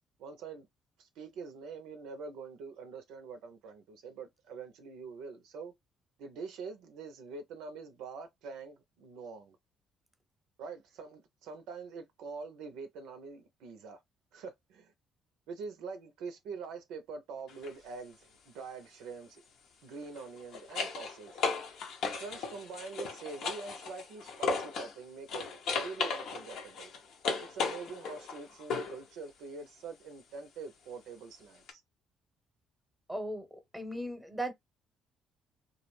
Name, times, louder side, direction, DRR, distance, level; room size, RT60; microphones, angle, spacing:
voice 1, 0.2-0.7 1.0-5.7 6.2-9.6 10.6-14.0 14.3-14.9 15.5-19.4 19.8-21.4 22.0-26.9 27.5-31.8, right 4 dB, 75° right, 0.5 m, -45 dB
sound 1, 17.5-17.7 20.0-25.0 25.3-29.0 31.7-31.8, left 4 dB, 70° left, 0.7 m, -36 dB
voice 2, 33.1-34.5, right 1 dB, 5° right, 0.8 m, -37 dB
2.3 x 2.0 x 3.1 m
hypercardioid pair, 60°, 0 cm